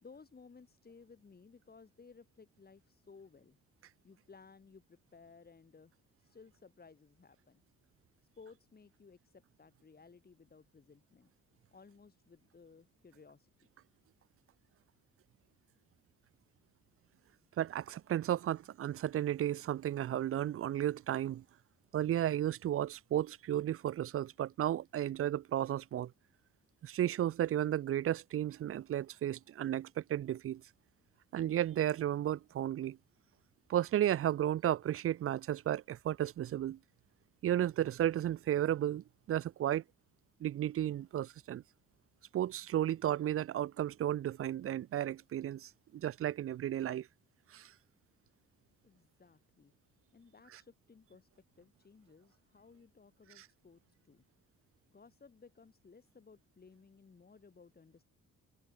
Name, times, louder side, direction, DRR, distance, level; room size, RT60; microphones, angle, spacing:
voice 1, 0.0-3.6 4.0-5.9 6.2-7.6 8.4-11.3 11.7-13.5 48.8-49.7 50.1-51.3 51.6-54.3 54.9-58.0, left 5 dB, 30° left, 3.7 m, -59 dB
voice 2, 17.6-21.4 21.9-26.1 26.8-30.6 31.3-33.0 33.7-36.8 37.4-39.8 40.4-41.6 42.3-47.1 47.5-47.7 53.4-53.5, right 12 dB, 45° right, 0.5 m, -33 dB
cardioid pair, 90°, 30 cm